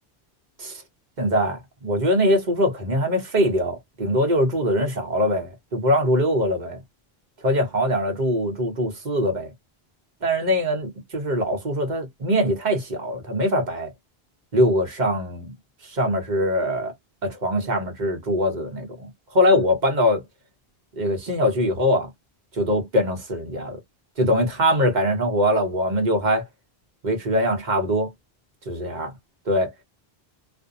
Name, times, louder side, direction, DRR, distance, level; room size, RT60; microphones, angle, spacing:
voice 1, 1.2-6.8 7.4-9.5 10.2-13.9 14.5-15.5 15.8-16.9 17.2-20.2 21.0-22.1 22.5-23.8 24.2-26.4 27.0-28.1 28.7-29.1 29.5-29.7, equal, 50° right, 1.0 m, -22 dB
2.5 x 2.1 x 2.6 m
omnidirectional pair, 1.0 m